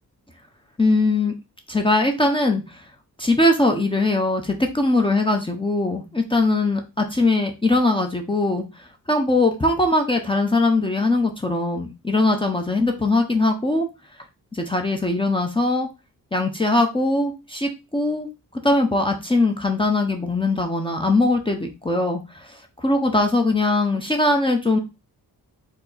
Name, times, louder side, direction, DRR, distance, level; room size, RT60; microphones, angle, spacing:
voice 1, 0.8-1.3 1.7-2.8 3.2-8.6 9.1-13.9 14.5-15.9 16.3-18.3 18.6-24.8, left 2 dB, 15° left, 3 dB, 0.7 m, -21 dB
4.6 x 2.8 x 4.0 m, 0.26 s
wide cardioid pair, 130°, 38 cm